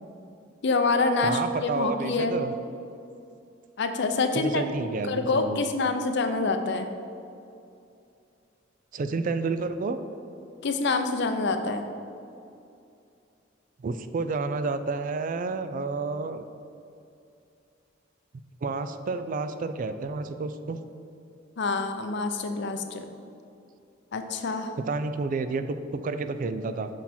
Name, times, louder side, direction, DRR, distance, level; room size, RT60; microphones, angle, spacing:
voice 1, 0.6-2.4 3.8-4.6 5.1-6.9 10.6-11.8 21.6-23.0 24.1-24.7, left 3 dB, 65° left, 7 dB, 0.6 m, -26 dB
voice 2, 1.2-2.5 4.3-5.6 8.9-10.0 13.8-16.4 18.6-20.8 24.8-26.9, right 3 dB, 45° right, 10 dB, 0.4 m, -30 dB
6.3 x 5.6 x 4.3 m, 2.6 s
head